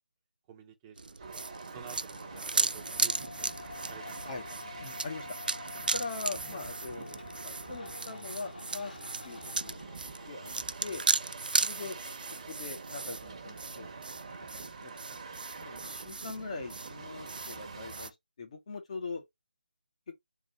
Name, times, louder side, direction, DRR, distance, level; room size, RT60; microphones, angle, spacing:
voice 1, 0.5-4.6 6.4-6.7 11.8-11.9, right 8 dB, 20° right, 0.9 m, -52 dB
sound 1, 1.0-18.1, right 3 dB, 70° right, 0.3 m, -36 dB
sound 2, 1.2-18.1, right 4 dB, 40° right, 1.1 m, -47 dB
sound 3, 2.1-11.7, left 3 dB, 75° left, 2.1 m, -48 dB
voice 2, 4.8-5.3 5.9-9.0 9.2-9.9 10.3-10.5 10.8-11.0 11.6-12.0 12.5-13.9 14.3-15.2 15.6-19.2, left 4 dB, 45° left, 1.3 m, -41 dB
3.9 x 2.7 x 4.3 m
figure-of-eight pair, 150°, 5 cm